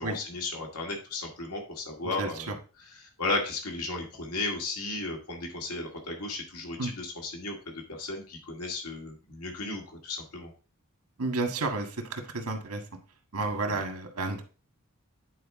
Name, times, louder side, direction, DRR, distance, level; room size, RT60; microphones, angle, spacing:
voice 1, 0.0-7.5 7.9-10.5 13.7-13.8, left 2 dB, 85° left, 1 dB, 2.1 m, -35 dB
voice 2, 11.2-12.8 13.3-14.4, right 3 dB, 85° right, 5 dB, 1.7 m, -31 dB
9.4 x 4.7 x 3.7 m, 0.35 s
head